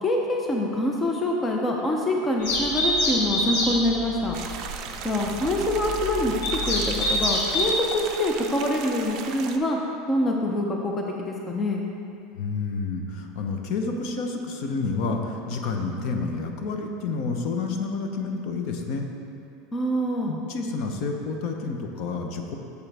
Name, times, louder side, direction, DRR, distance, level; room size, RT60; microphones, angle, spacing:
voice 1, 0.0-4.4 5.0-6.3 6.6-9.8 10.1-11.8 19.7-20.4, left 1 dB, 15° left, 0 dB, 0.5 m, -25 dB
sound 1, 2.4-7.6, left 1 dB, 70° left, 1.9 m, -27 dB
sound 2, 4.3-9.6, right 7 dB, 40° right, 0.4 m, -37 dB
voice 2, 12.4-19.1 20.3-22.6, left 4 dB, 50° left, 3 dB, 0.7 m, -29 dB
8.8 x 6.9 x 3.4 m, 2.7 s
supercardioid pair, 165°, 0 cm